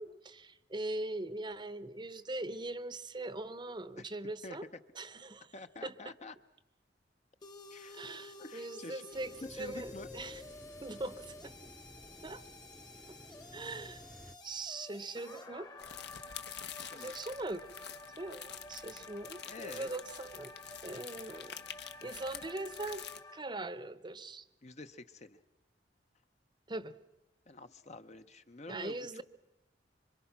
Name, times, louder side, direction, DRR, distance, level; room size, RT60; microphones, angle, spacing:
voice 1, 0.0-4.7 5.0-5.5 5.8-6.1 7.9-9.3 9.6-10.4 10.8-11.7 12.2-12.4 13.1-13.2 13.5-14.0 14.4-15.7 16.9-17.7 18.2-20.5 20.8-21.6 22.0-23.1 23.3-24.5 26.7-26.9 28.7-29.2, right 2 dB, 25° right, 15 dB, 0.8 m, -41 dB
voice 2, 5.5-6.3 7.7-8.0 8.3-9.1 9.4-10.1 16.8-17.1 19.5-19.9 24.6-25.4 27.5-29.2, left 2 dB, 40° left, 9 dB, 0.8 m, -48 dB
sound 1, 7.4-23.4, left 2 dB, 25° left, 1.2 m, -51 dB
sound 2, 9.1-14.4, equal, ahead, 0.8 m, -54 dB
sound 3, 15.8-23.2, left 9 dB, 65° left, 1.1 m, -48 dB
26.5 x 25.0 x 5.9 m, 0.93 s
head